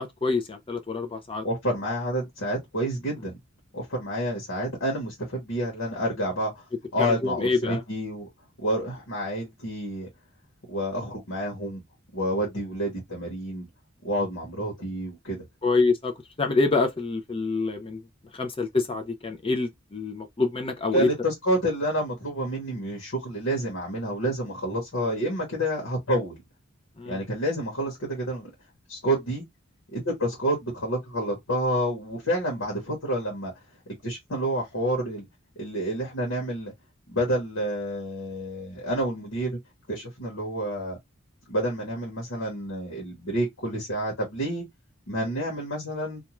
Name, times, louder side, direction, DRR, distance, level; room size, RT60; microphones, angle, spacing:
voice 1, 0.0-1.4 7.0-7.8 15.6-16.1 16.4-18.0 18.3-21.1 27.0-27.2, left 3 dB, 25° left, 0.5 m, -26 dB
voice 2, 1.4-3.4 3.7-6.6 6.9-8.3 8.6-10.1 10.7-11.8 12.1-13.7 14.0-15.4 20.9-26.4 27.0-28.5 28.9-29.4 29.9-33.5 33.9-35.3 35.6-36.7 37.1-39.6 39.9-41.0 41.5-44.6 45.1-46.2, right 1 dB, 85° left, 1.1 m, -29 dB
2.6 x 2.2 x 3.0 m
head